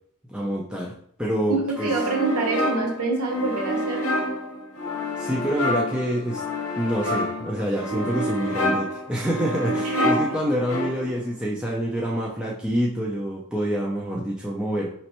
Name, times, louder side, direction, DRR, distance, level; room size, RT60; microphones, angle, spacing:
voice 1, 0.3-0.9 1.2-1.9 5.2-6.4 6.7-14.9, equal, 5° right, -4 dB, 0.4 m, -27 dB
voice 2, 1.5-4.2 9.8-10.2, right 3 dB, 80° right, 2 dB, 0.9 m, -26 dB
sound 1, 1.8-11.3, equal, 65° left, 0.8 m, -28 dB
5.1 x 3.1 x 2.9 m, 0.63 s
head